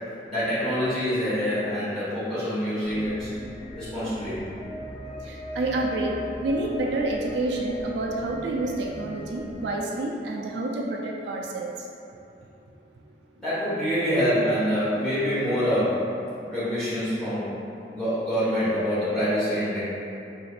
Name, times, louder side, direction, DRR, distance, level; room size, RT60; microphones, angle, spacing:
voice 1, 0.3-3.3 3.7-4.4 13.4-16.0 16.5-17.5 17.9-19.8, equal, 5° left, -15 dB, 1.4 m, -25 dB
sound 1, 2.8-9.7, left 1 dB, 30° left, 0.7 m, -39 dB
voice 2, 5.3-11.7, right 2 dB, 75° right, -1 dB, 0.3 m, -28 dB
3.8 x 2.8 x 2.5 m, 2.9 s
head